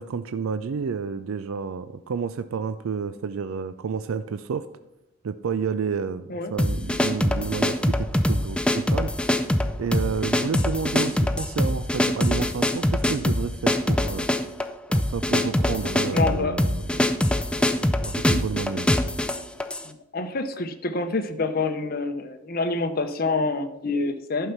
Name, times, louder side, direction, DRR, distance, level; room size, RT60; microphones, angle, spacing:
voice 1, 0.0-4.7 5.2-9.1 9.8-14.3 14.9-17.0 17.6-18.9, right 6 dB, 70° right, 12 dB, 0.4 m, -30 dB
sound 1, 6.6-19.9, left 1 dB, 5° left, 0.4 m, -23 dB
voice 2, 16.1-16.6 19.8-24.5, left 3 dB, 45° left, 7 dB, 0.8 m, -27 dB
11.0 x 5.6 x 5.8 m, 0.92 s
head